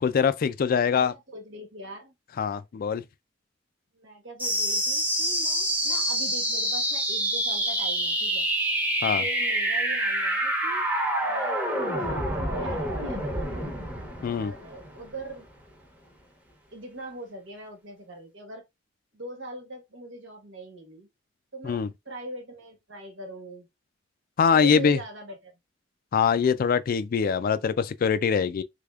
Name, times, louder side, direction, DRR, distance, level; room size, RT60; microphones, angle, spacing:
voice 1, 0.0-1.1 2.4-3.0 9.0-9.2 14.2-14.5 21.6-21.9 24.4-25.0 26.1-28.6, left 6 dB, 50° left, 0.3 m, -23 dB
voice 2, 0.9-2.1 3.9-8.5 9.2-10.9 11.2-13.7 14.2-15.5 16.7-18.6 19.1-21.1 21.5-23.7 24.5-25.5, right 2 dB, 80° right, 1.3 m, -41 dB
sound 1, 4.4-15.4, right 1 dB, 10° right, 0.9 m, -27 dB
3.5 x 3.4 x 2.4 m
head